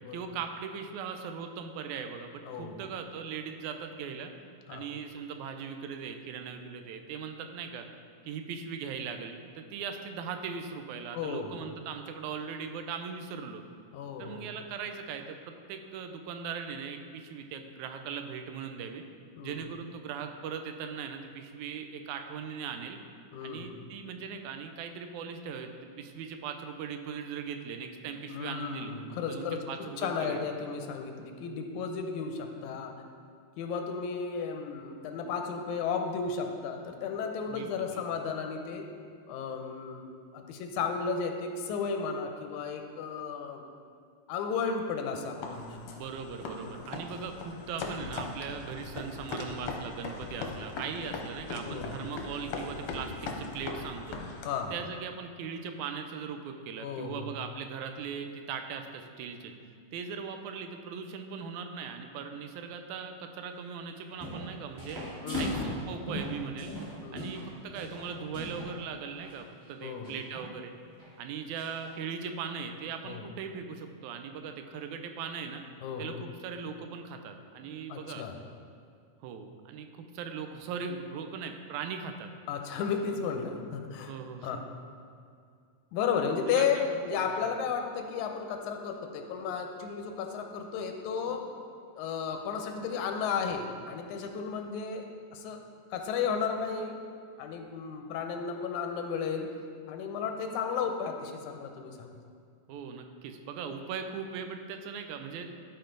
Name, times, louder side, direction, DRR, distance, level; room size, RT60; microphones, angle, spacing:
voice 1, 0.1-4.3 4.7-7.9 8.3-13.6 14.2-19.0 19.4-23.0 23.4-25.7 26.0-28.9 29.3-30.4 37.5-38.2 46.0-54.2 54.7-59.5 59.9-65.0 65.4-66.7 67.1-70.7 71.2-75.6 76.0-78.2 79.2-82.3 84.1-84.6 86.5-86.9 102.7-105.5, right 6 dB, 85° right, 6 dB, 2.0 m, -39 dB
voice 2, 2.5-2.8 4.7-4.9 11.1-11.7 13.9-14.4 19.4-19.7 23.3-23.8 28.3-32.9 33.6-38.9 39.3-43.6 44.3-45.8 46.6-46.9 51.6-52.0 54.4-54.7 56.8-57.3 65.2-65.7 67.0-67.3 69.8-70.1 73.1-73.3 75.8-76.2 77.9-78.4 82.5-84.1 84.4-84.6 85.9-91.4 92.0-95.1 95.3-95.6 95.9-97.0 97.4-99.5 99.9-102.2, left 6 dB, 90° left, 4 dB, 2.1 m, -34 dB
sound 1, 45.4-54.7, left 3 dB, 70° left, 1.5 m, -39 dB
sound 2, 63.9-64.5 64.8-68.7 69.1-69.4 70.0-70.5 71.0-71.1 71.6-71.9, left 1 dB, 20° right, 1.7 m, -38 dB
12.5 x 4.5 x 3.9 m, 2.3 s
omnidirectional pair, 3.4 m